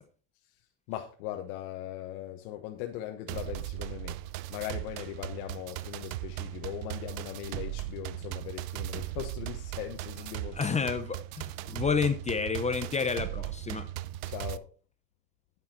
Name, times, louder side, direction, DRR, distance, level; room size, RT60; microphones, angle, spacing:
voice 1, 0.9-4.2 4.5-10.8 14.3-14.6, left 13 dB, 80° left, 1.3 m, -39 dB
sound 1, 3.3-14.6, right 15 dB, 75° right, 0.7 m, -38 dB
voice 2, 10.5-13.9, left 5 dB, 15° left, 0.7 m, -30 dB
9.6 x 7.5 x 4.3 m
cardioid pair, 140°, 41 cm